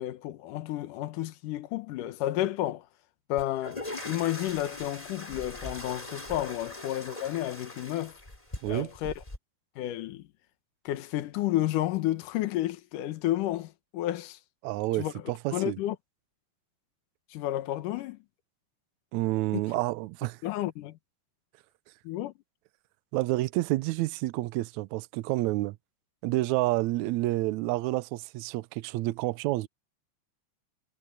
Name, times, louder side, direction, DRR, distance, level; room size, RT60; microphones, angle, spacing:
voice 1, 0.0-2.9 3.3-8.2 8.7-9.1 9.8-10.3 10.9-14.4 15.0-15.1 15.5-16.0 17.3-18.2 20.4-21.0 22.0-22.3, left 14 dB, 80° left, 2.7 m, -31 dB
sound 1, 3.4-9.4, left 2 dB, 10° left, 3.5 m, -41 dB
voice 2, 14.6-15.8 19.1-20.4 23.1-25.8 26.2-29.7, right 18 dB, 75° right, 1.8 m, -29 dB
omnidirectional pair, 3.7 m